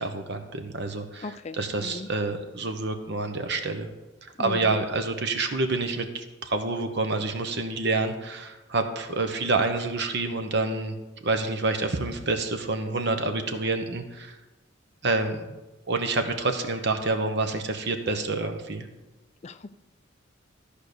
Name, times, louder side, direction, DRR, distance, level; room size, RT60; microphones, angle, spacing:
voice 1, 0.0-3.9 4.4-11.0 11.2-14.3 15.0-15.6 15.9-18.9, right 3 dB, 60° right, 6 dB, 1.0 m, -28 dB
voice 2, 1.2-2.1 4.4-4.8 19.4-19.8, left 3 dB, 35° left, 11 dB, 0.4 m, -37 dB
13.5 x 5.0 x 6.8 m, 1.1 s
head